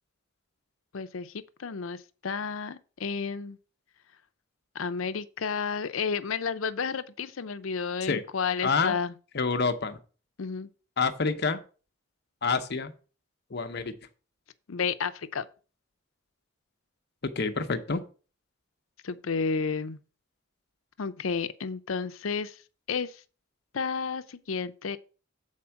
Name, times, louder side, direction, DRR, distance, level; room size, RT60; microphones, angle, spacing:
voice 1, 0.9-3.6 4.7-9.1 10.4-10.7 14.7-15.5 19.0-20.0 21.0-22.6 22.9-23.2 23.7-25.0, left 5 dB, 90° left, 0.6 m, -31 dB
voice 2, 8.6-8.9 9.3-10.0 11.0-11.6 12.4-12.9 13.5-13.9 17.2-18.0, left 4 dB, 55° left, 0.8 m, -27 dB
7.5 x 4.4 x 5.7 m
head